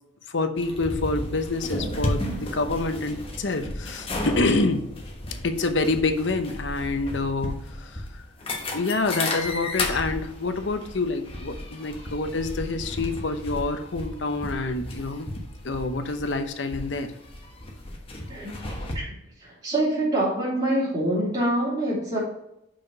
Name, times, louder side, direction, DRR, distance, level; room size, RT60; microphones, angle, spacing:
voice 1, 0.3-4.8 5.4-8.0 8.7-15.3 15.6-17.1, left 3 dB, 65° left, 7 dB, 0.8 m, -27 dB
sound 1, 0.6-18.9, left 1 dB, 30° left, 1.2 m, -34 dB
voice 2, 18.3-18.6 18.9-19.1 19.4-22.2, right 1 dB, 30° right, -10 dB, 3.0 m, -25 dB
5.8 x 5.3 x 5.2 m, 0.82 s
head